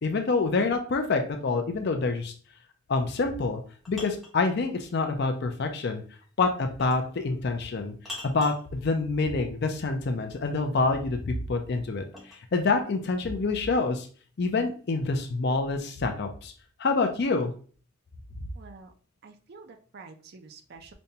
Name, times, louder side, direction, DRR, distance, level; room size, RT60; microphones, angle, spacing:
voice 1, 0.0-2.3 2.9-3.6 3.9-6.0 6.4-7.9 8.2-14.1 14.4-16.5 16.8-17.5, left 3 dB, 50° left, 5 dB, 0.5 m, -27 dB
sound 1, 3.4-4.4 6.8-7.1 8.1-8.7 10.9-12.5, left 2 dB, ahead, 0.7 m, -43 dB
voice 2, 18.6-18.9 19.2-20.9, right 4 dB, 50° right, 5 dB, 0.4 m, -48 dB
5.1 x 2.2 x 2.7 m, 0.41 s
head